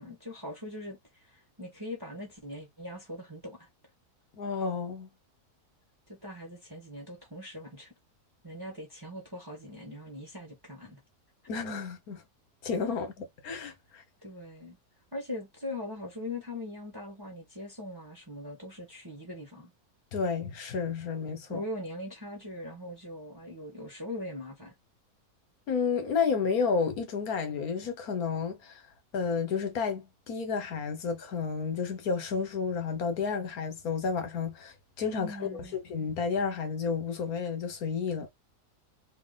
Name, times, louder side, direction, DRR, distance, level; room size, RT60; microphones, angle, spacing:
voice 1, 0.0-3.7 6.1-7.9 8.4-11.0 14.2-14.8 15.1-19.7 21.5-24.7 35.2-35.8, left 1 dB, 15° right, 1.1 m, -41 dB
voice 2, 4.4-5.1 11.5-12.2 12.6-14.0 20.1-21.6 25.7-28.8 29.1-35.6 35.9-38.3, left 5 dB, 70° left, 1.5 m, -31 dB
2.9 x 2.9 x 3.9 m
omnidirectional pair, 1.7 m